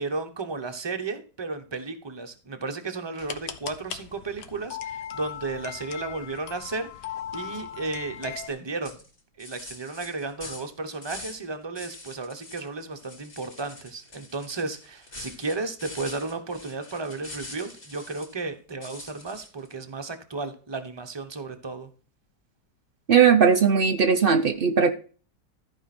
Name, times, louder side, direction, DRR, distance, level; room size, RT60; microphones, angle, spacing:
voice 1, 0.0-9.0 9.4-21.9, right 3 dB, 20° right, 0.7 m, -34 dB
sound 1, 3.2-8.5, left 9 dB, 70° left, 1.5 m, -38 dB
sound 2, 8.4-8.5 8.8-11.5 11.7-12.7 13.0-18.4 18.8-19.7, left 2 dB, 30° left, 2.3 m, -44 dB
voice 2, 23.1-24.9, right 6 dB, 80° right, 0.5 m, -18 dB
14.0 x 4.9 x 4.2 m
omnidirectional pair, 1.9 m